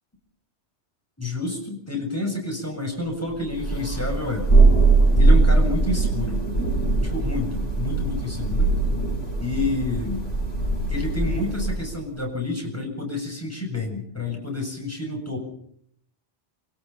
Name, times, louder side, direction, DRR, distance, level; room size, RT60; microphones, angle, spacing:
voice 1, 1.2-4.5 5.2-6.4 7.0-8.7 9.4-10.2 10.9-15.4, left 2 dB, 10° left, 1 dB, 7.3 m, -29 dB
Thunder, 3.5-11.9, right 3 dB, 85° left, 6.9 m, -21 dB
28.0 x 18.5 x 5.7 m, 0.67 s
omnidirectional pair, 1.2 m